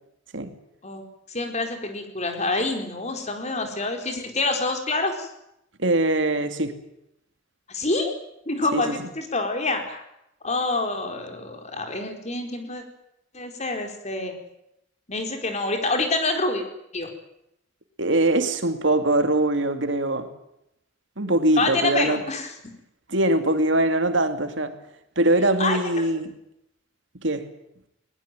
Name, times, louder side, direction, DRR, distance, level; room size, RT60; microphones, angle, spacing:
voice 1, 1.3-5.3 7.7-8.1 8.5-10.0 10.4-12.8 13.3-14.4 15.1-16.6 16.9-17.1 21.6-22.5 25.6-25.8, left 2 dB, 35° left, 5 dB, 4.6 m, -27 dB
voice 2, 5.8-6.8 8.7-9.1 18.0-20.3 21.2-22.2 23.1-24.8 25.2-26.3 27.2-27.4, right 1 dB, 65° right, 8 dB, 2.6 m, -22 dB
21.0 x 20.5 x 9.2 m, 0.80 s
head